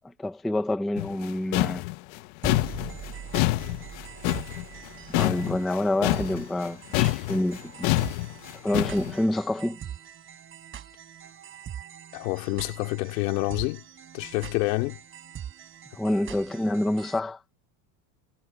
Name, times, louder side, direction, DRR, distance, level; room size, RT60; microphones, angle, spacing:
voice 1, 0.2-1.8 5.1-7.9 8.6-9.8 15.9-17.4, left 1 dB, ahead, 0.3 m, -27 dB
sound 1, 1.0-6.7 6.9-9.1, left 21 dB, 60° left, 1.0 m, -27 dB
sound 2, 2.4-17.2, right 9 dB, 25° right, 4.1 m, -42 dB
voice 2, 12.1-13.8 14.1-15.0, left 23 dB, 85° left, 3.0 m, -28 dB
cardioid pair, 170°, 47 cm